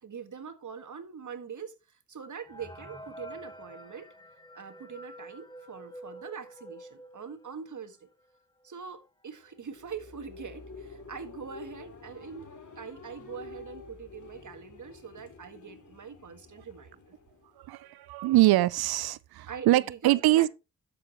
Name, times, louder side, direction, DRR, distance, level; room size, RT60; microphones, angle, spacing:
voice 1, 0.0-4.1 4.5-8.1 8.6-17.1 19.5-20.5, right 6 dB, 50° right, 1.7 m, -43 dB
sound 1, 2.5-7.9 8.3-8.4 8.6-8.8 9.5-9.6 10.0-10.3, equal, 10° left, 1.3 m, -47 dB
sound 2, 9.4-18.0, left 4 dB, 50° left, 2.9 m, -49 dB
voice 2, 17.6-20.5, right 16 dB, 80° right, 0.5 m, -24 dB
12.0 x 7.0 x 3.0 m
supercardioid pair, 45°, 37 cm